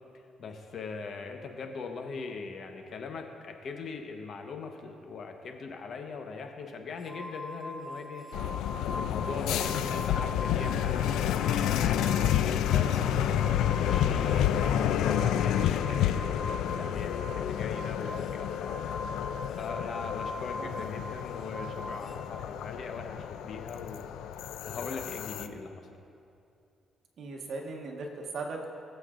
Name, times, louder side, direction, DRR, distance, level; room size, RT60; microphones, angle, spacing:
voice 1, 0.4-8.4 8.9-13.4 13.8-14.5 15.0-18.9 19.5-24.1 24.6-25.8, left 4 dB, 60° left, 4 dB, 1.1 m, -40 dB
sound 1, 7.0-11.0 11.3-22.2, left 1 dB, 35° left, 0.9 m, -42 dB
sound 2, 8.3-25.5, left 10 dB, 90° left, 0.4 m, -29 dB
voice 2, 27.2-28.7, right 3 dB, 65° right, 0 dB, 1.5 m, -38 dB
20.0 x 7.6 x 2.5 m, 2.6 s
cardioid pair, 90°, 0 cm